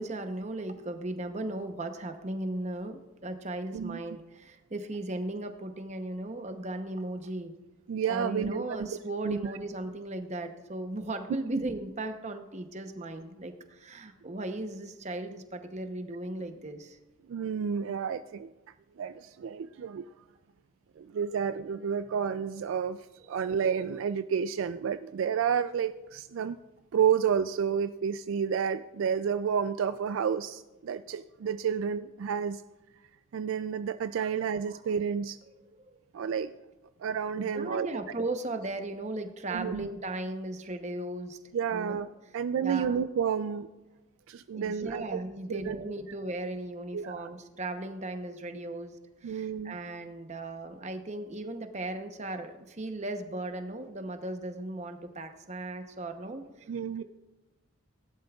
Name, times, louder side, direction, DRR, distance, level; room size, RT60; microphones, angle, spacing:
voice 1, 0.0-7.5 8.1-17.0 34.7-34.8 35.9-36.0 37.4-41.4 41.7-42.0 42.6-43.0 44.5-56.4 57.0-57.1, right 2 dB, 30° right, 7 dB, 0.8 m, -37 dB
voice 2, 7.9-8.9 9.2-9.5 17.3-18.5 19.0-20.1 21.0-26.6 26.9-32.6 33.3-35.4 36.1-36.5 37.0-37.9 39.5-39.9 41.5-43.7 44.3-45.2 45.5-45.8 46.9-47.3 49.2-49.8 56.7-57.0, right 7 dB, 65° right, 11 dB, 0.3 m, -30 dB
17.5 x 11.5 x 2.4 m, 1.1 s
head